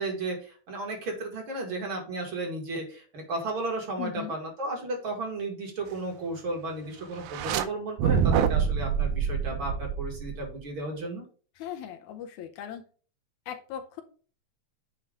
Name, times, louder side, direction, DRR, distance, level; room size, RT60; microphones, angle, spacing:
voice 1, 0.0-11.2, right 2 dB, 45° right, 1 dB, 2.5 m, -34 dB
voice 2, 4.0-4.4 11.6-12.8 13.5-14.0, left 9 dB, 80° left, 6 dB, 2.1 m, -38 dB
sound 1, 7.2-7.6 8.0-10.6, right 7 dB, 90° right, 2.2 m, -26 dB
8.9 x 3.0 x 5.0 m, 0.40 s
omnidirectional pair, 3.4 m